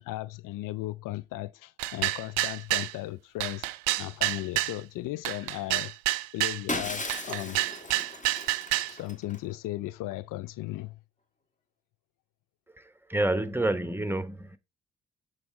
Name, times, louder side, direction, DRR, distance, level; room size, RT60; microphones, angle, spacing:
voice 1, 0.0-3.7 4.0-5.9 6.3-7.6 8.7-11.0, left 16 dB, 65° left, 0.5 m, -36 dB
sound 1, 1.8-2.9 3.4-4.8 5.3-6.6 7.1-8.9, right 17 dB, 85° right, 0.5 m, -28 dB
Shatter, 6.7-9.4, left 2 dB, 20° left, 1.9 m, -36 dB
voice 2, 12.7-14.6, right 1 dB, 5° right, 1.1 m, -29 dB
7.1 x 4.1 x 4.6 m
hypercardioid pair, 45°, 34 cm